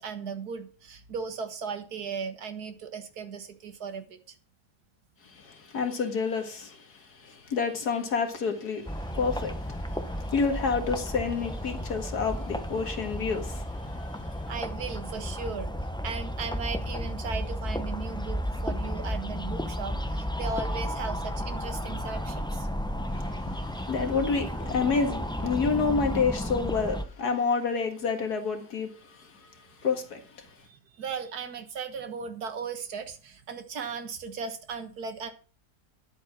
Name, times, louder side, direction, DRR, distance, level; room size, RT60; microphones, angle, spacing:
voice 1, 0.0-4.4 14.5-15.7 16.0-22.7 30.6-35.3, right 5 dB, 75° right, 1.9 m, -37 dB
voice 2, 5.2-14.5 23.1-30.5, left 5 dB, 80° left, 2.3 m, -29 dB
sound 1, 8.9-27.1, equal, 5° left, 0.3 m, -33 dB
11.0 x 8.3 x 6.0 m
omnidirectional pair, 1.7 m